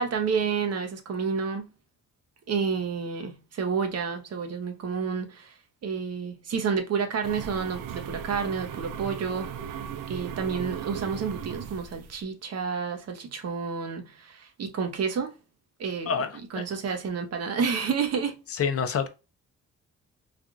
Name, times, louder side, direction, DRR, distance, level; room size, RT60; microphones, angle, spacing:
voice 1, 0.0-1.7 2.5-5.5 5.8-9.5 10.1-15.3 15.8-16.1 16.5-18.4, right 5 dB, 50° right, 0.8 m, -30 dB
sound 1, 7.2-12.2, right 8 dB, 85° right, 0.5 m, -37 dB
voice 2, 16.1-16.6 18.5-19.1, left 6 dB, 50° left, 0.6 m, -27 dB
3.3 x 2.4 x 2.4 m
supercardioid pair, 60°, 31 cm